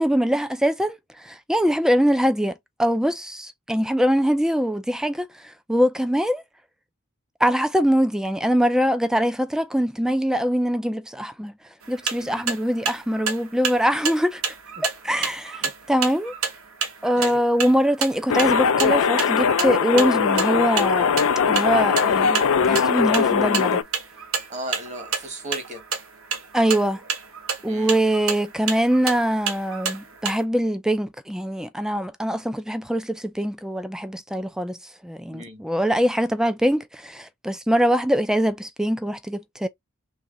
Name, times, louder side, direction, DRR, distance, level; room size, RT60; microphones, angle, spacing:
voice 1, 0.0-6.4 7.4-11.5 11.9-14.5 14.8-16.3 17.0-21.1 21.5-23.8 26.5-27.0 27.6-34.8 35.0-39.7, equal, 5° right, 0.4 m, -23 dB
sound 1, 11.8-30.4, right 6 dB, 70° right, 1.0 m, -30 dB
sound 2, 18.3-23.8, left 6 dB, 65° left, 0.4 m, -20 dB
voice 2, 24.5-25.8 27.6-28.1 35.3-35.6, right 1 dB, 35° right, 1.3 m, -36 dB
3.2 x 2.8 x 3.7 m
head